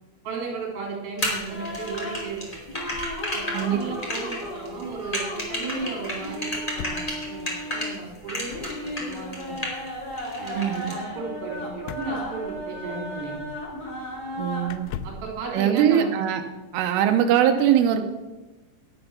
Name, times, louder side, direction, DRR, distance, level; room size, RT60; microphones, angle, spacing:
voice 1, 0.2-2.4 3.3-9.8 10.4-13.5 15.0-16.1, right 4 dB, 45° right, -1 dB, 4.4 m, -35 dB
sound 1, 1.2-7.9 8.3-9.9 10.2-10.9, equal, 15° left, 1.6 m, -31 dB
sound 2, 1.5-14.7, equal, 35° left, 1.7 m, -35 dB
sound 3, 2.9-3.9 4.2-4.3 4.4-4.7 6.5-7.2 8.5-8.8 11.8-13.0 13.8-13.9 14.6-15.3, left 8 dB, 85° left, 3.1 m, -40 dB
voice 2, 10.5-10.9 14.4-14.9 15.5-16.4 16.7-18.0, right 10 dB, 90° right, 5 dB, 3.3 m, -21 dB
12.0 x 8.8 x 5.9 m, 1.2 s
omnidirectional pair, 5.6 m